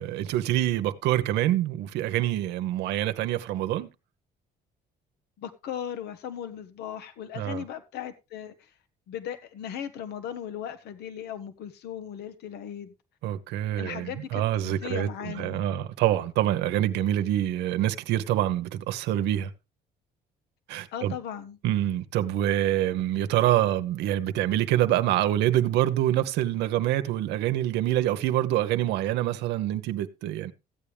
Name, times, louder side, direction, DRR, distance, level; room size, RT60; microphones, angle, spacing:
voice 1, 0.0-3.9 7.3-7.6 13.2-19.5 20.7-21.1 21.6-30.5, right 13 dB, 90° right, 1.0 m, -26 dB
voice 2, 5.4-8.7 9.1-12.9 13.8-15.6 20.9-21.6, left 9 dB, 75° left, 1.0 m, -37 dB
14.5 x 8.6 x 3.3 m
cardioid pair, 110°, 17 cm